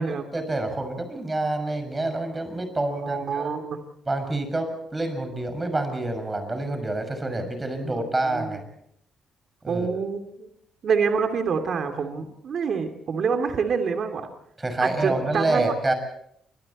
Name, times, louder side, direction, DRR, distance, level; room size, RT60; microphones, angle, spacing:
voice 1, 0.0-3.5 4.1-8.6 9.6-9.9 14.6-15.9, right 2 dB, 20° right, 7 dB, 6.4 m, -27 dB
voice 2, 3.0-3.8 7.8-8.6 9.7-10.5 10.8-14.3 14.8-15.7, right 5 dB, 55° right, 6 dB, 3.0 m, -27 dB
29.0 x 26.0 x 4.4 m, 0.71 s
cardioid pair, 125°, 0 cm